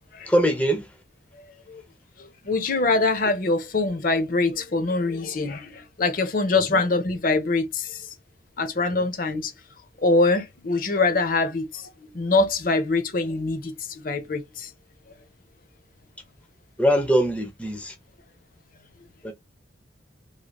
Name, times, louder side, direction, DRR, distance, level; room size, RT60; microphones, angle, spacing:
voice 1, 0.3-0.9 6.7-6.8 16.8-17.9 19.2-19.3, equal, 5° left, 0.5 m, -22 dB
voice 2, 2.4-8.1 8.6-9.5 10.0-13.7 14.0-14.7, left 3 dB, 50° left, 0.6 m, -24 dB
3.2 x 2.7 x 2.3 m
head